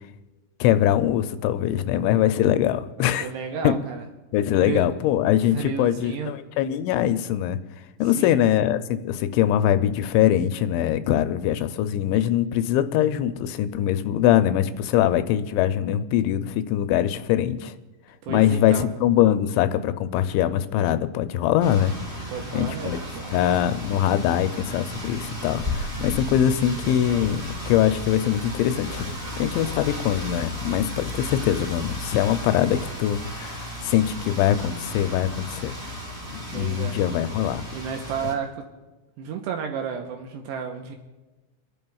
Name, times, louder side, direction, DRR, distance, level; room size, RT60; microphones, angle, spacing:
voice 1, 0.6-3.3 3.6-3.7 4.3-7.6 8.0-17.7 18.3-22.3 22.5-23.0 23.3-35.7 36.3-37.6, left 11 dB, 85° left, 10 dB, 2.9 m, -22 dB
voice 2, 3.0-4.0 4.6-4.9 5.5-6.3 8.2-8.4 18.2-18.9 22.3-23.2 36.5-37.0 37.7-38.7 39.2-41.0, right 7 dB, 80° right, 3 dB, 2.7 m, -32 dB
sound 1, 21.6-38.3, equal, 15° right, 1.5 m, -34 dB
29.5 x 11.0 x 2.3 m, 1.1 s
omnidirectional pair, 5.4 m